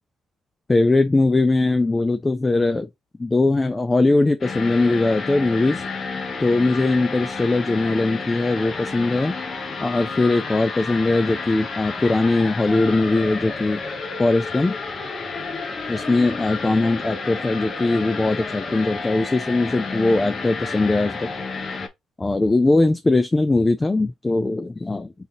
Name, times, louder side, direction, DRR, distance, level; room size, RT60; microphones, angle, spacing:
voice 1, 0.7-2.9 3.2-5.8 6.4-9.4 9.8-13.8 14.2-14.8 15.9-21.3 22.2-25.1, left 2 dB, 20° left, 0.4 m, -20 dB
sound 1, 4.4-21.9, left 4 dB, 45° left, 0.9 m, -31 dB
4.1 x 2.8 x 3.8 m
cardioid pair, 90°, 0 cm